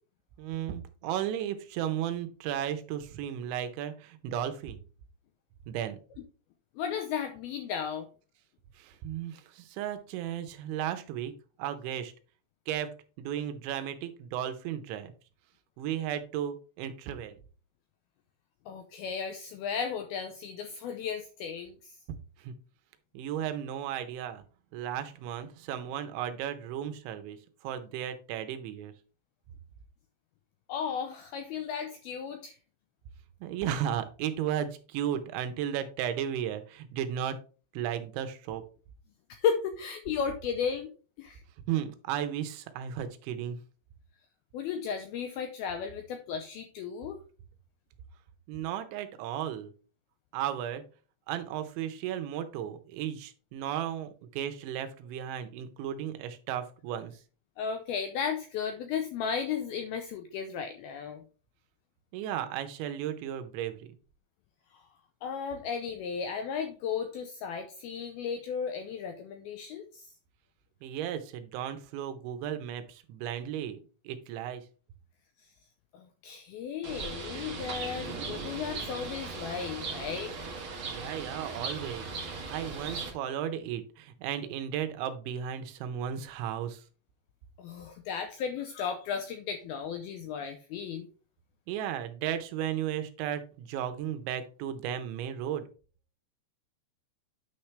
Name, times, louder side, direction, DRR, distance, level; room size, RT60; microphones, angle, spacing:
voice 1, 0.4-4.8 5.7-6.0 8.8-11.3 11.6-12.1 12.7-15.1 15.8-17.4 22.4-22.5 23.1-24.4 24.7-28.9 33.4-37.4 37.7-38.6 41.7-43.6 48.5-49.7 50.3-50.8 51.3-57.2 62.1-63.9 70.8-73.8 74.0-74.6 80.9-82.1 82.3-86.8 91.7-95.7, right 10 dB, 90° right, 9 dB, 3.3 m, -35 dB
voice 2, 6.8-8.1 18.7-22.0 30.7-32.6 39.3-40.9 41.2-41.4 44.5-47.2 57.6-61.2 64.7-64.8 65.2-70.1 75.9-80.3 87.6-91.1, left 7 dB, 85° left, 6 dB, 2.2 m, -34 dB
Bird, 76.8-83.1, right 4 dB, 55° right, 1.4 m, -38 dB
9.3 x 5.9 x 3.3 m, 0.37 s
omnidirectional pair, 5.2 m